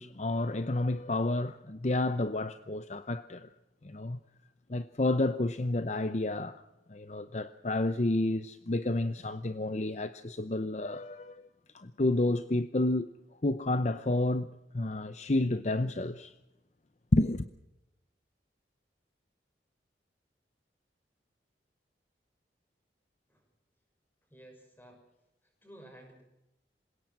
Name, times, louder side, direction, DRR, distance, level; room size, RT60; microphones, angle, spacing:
voice 1, 0.0-3.5 3.8-4.2 4.7-6.6 6.9-11.5 11.7-13.1 13.4-16.3 17.1-17.5, left 2 dB, 40° left, 0.7 m, -30 dB
voice 2, 24.3-25.0 25.6-26.2, right 1 dB, 10° left, 6.3 m, -53 dB
27.0 x 18.0 x 6.2 m
head